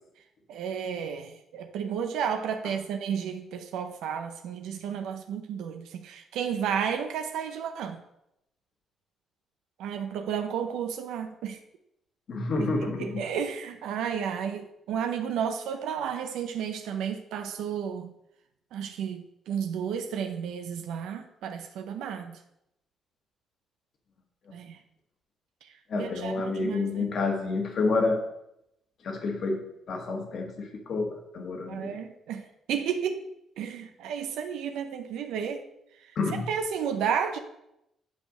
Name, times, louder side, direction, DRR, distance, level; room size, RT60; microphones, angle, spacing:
voice 1, 0.5-8.0 9.8-11.6 12.8-18.1 18.7-22.4 24.5-24.8 25.6-25.7 25.9-27.1 31.7-33.3 33.6-35.6 36.3-37.4, right 7 dB, 85° right, 0.6 m, -32 dB
voice 2, 12.3-13.2 25.9-28.2 29.0-29.6 29.9-32.0 36.1-36.4, left 3 dB, 60° left, 1.4 m, -29 dB
8.3 x 3.4 x 6.3 m
cardioid pair, 90°, 0 cm